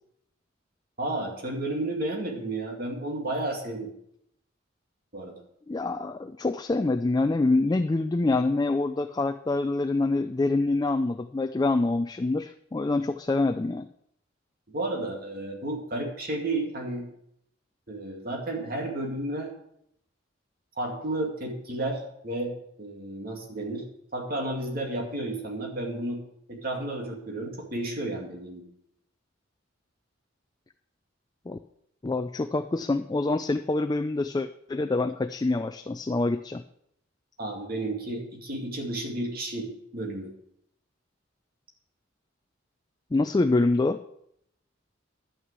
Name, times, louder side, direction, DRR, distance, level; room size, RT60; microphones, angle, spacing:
voice 1, 1.0-3.9 5.1-5.4 14.7-17.1 17.9-19.5 20.8-22.5 22.8-23.8 24.1-26.2 26.5-28.6 37.4-40.3, right 2 dB, 50° right, 1 dB, 2.3 m, -32 dB
voice 2, 5.7-13.9 31.5-31.6 32.0-36.6 43.1-44.0, left 2 dB, 20° left, 8 dB, 0.3 m, -26 dB
11.0 x 6.2 x 8.2 m, 0.75 s
head